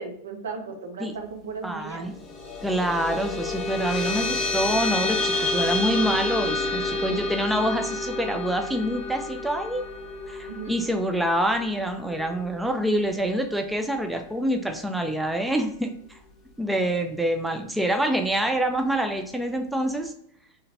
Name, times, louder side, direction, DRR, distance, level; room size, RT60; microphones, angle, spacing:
voice 1, 0.0-2.1 10.5-10.8, right 4 dB, 60° right, 4 dB, 0.7 m, -36 dB
voice 2, 1.6-2.1 2.6-9.9 10.3-16.2 16.6-20.1, right 1 dB, 5° right, 5 dB, 0.4 m, -26 dB
sound 1, 2.1-12.9, left 2 dB, 25° left, 0.9 m, -29 dB
3.8 x 3.2 x 2.7 m, 0.72 s
figure-of-eight pair, 90°, 0 cm